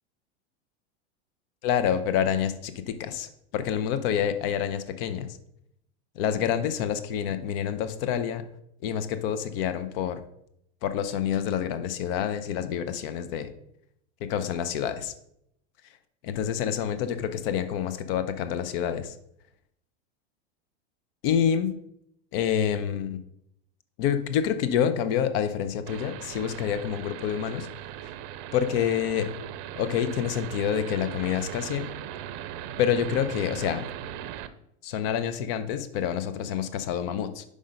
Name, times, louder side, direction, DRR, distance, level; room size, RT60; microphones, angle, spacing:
voice 1, 1.6-5.4 6.2-8.4 8.8-10.2 10.8-13.5 14.2-15.1 16.2-19.1 21.2-21.8 22.3-23.2 24.0-27.7 28.5-29.3 29.8-31.9 32.8-33.8 34.8-37.4, left 9 dB, 60° left, 11 dB, 0.8 m, -27 dB
sound 1, 25.9-34.5, right 11 dB, 50° right, 0.6 m, -39 dB
5.4 x 5.0 x 5.2 m, 0.76 s
supercardioid pair, 130°, 32 cm